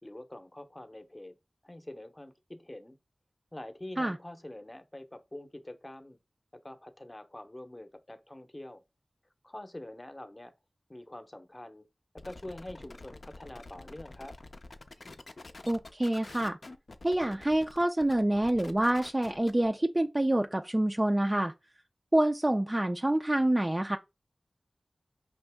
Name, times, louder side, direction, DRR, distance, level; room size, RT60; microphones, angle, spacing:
voice 1, 0.0-1.4 1.6-3.0 3.5-6.2 6.5-8.8 9.4-10.5 10.9-11.9 12.2-14.4, left 1 dB, 30° left, 0.7 m, -45 dB
sound 1, 12.2-19.7, left 2 dB, 65° left, 0.5 m, -48 dB
voice 2, 15.7-16.6 17.0-21.5 22.1-24.0, right 1 dB, 25° right, 0.3 m, -27 dB
5.2 x 2.9 x 3.4 m
wide cardioid pair, 55°, 0 cm